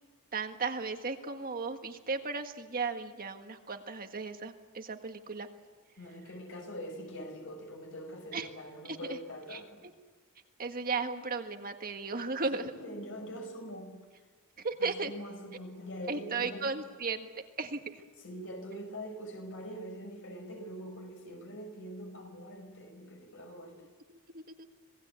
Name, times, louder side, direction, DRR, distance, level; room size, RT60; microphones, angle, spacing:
voice 1, 0.3-5.5 8.3-8.5 8.8-9.2 9.5-9.6 10.6-12.7 14.6-15.1 16.1-17.3 17.6-18.0 24.1-24.7, right 4 dB, 40° right, 6 dB, 1.7 m, -35 dB
voice 2, 6.0-9.8 12.5-14.0 14.8-16.8 18.2-23.8, equal, 60° left, 5 dB, 5.7 m, -43 dB
27.0 x 19.0 x 8.3 m, 1.4 s
head